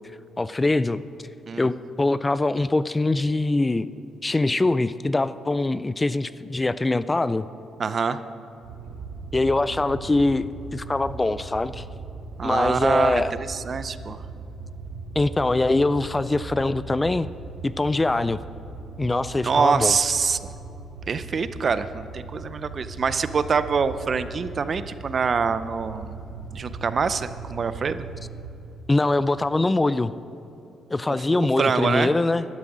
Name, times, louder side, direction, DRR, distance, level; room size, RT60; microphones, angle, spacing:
voice 1, 0.4-1.0 1.6-3.9 4.2-7.5 9.3-10.5 10.7-11.8 12.4-13.3 15.2-17.3 17.6-18.4 19.0-19.9 28.9-30.1 30.9-32.5, left 2 dB, 20° left, 15 dB, 0.3 m, -23 dB
voice 2, 7.8-8.2 12.4-14.2 19.4-20.5 21.1-26.1 26.5-28.0 31.3-32.1, right 5 dB, 45° right, 13 dB, 0.6 m, -25 dB
sound 1, 8.6-28.5, right 4 dB, 85° right, 1.3 m, -38 dB
11.5 x 11.5 x 6.2 m, 2.9 s
cardioid pair, 90°, 0 cm